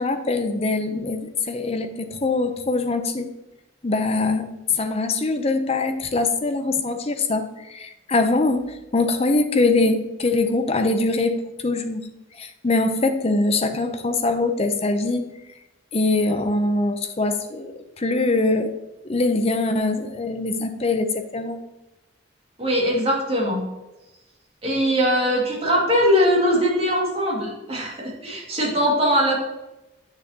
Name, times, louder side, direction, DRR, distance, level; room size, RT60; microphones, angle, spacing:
voice 1, 0.0-3.3 3.8-11.3 11.6-12.1 12.4-15.2 15.9-17.7 18.0-18.7 19.0-21.6, left 3 dB, 30° left, 6 dB, 0.7 m, -23 dB
voice 2, 22.6-23.7 24.6-29.4, equal, 30° right, -3 dB, 2.3 m, -21 dB
8.1 x 6.6 x 2.9 m, 0.98 s
head